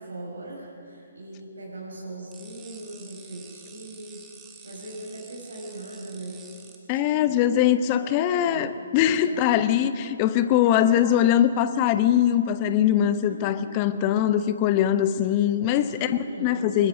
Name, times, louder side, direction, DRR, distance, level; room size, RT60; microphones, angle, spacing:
voice 1, 0.0-4.3 4.6-6.5 6.9-7.4 7.9-8.7 9.1-9.4 10.4-11.0 13.2-13.5 15.8-16.9, right 1 dB, 65° right, -4 dB, 6.2 m, -40 dB
sound 1, 2.3-6.8, right 6 dB, 15° right, 2.2 m, -48 dB
voice 2, 6.9-16.9, left 10 dB, 30° left, 12 dB, 1.0 m, -22 dB
24.5 x 21.0 x 5.2 m, 2.7 s
figure-of-eight pair, 135°, 0 cm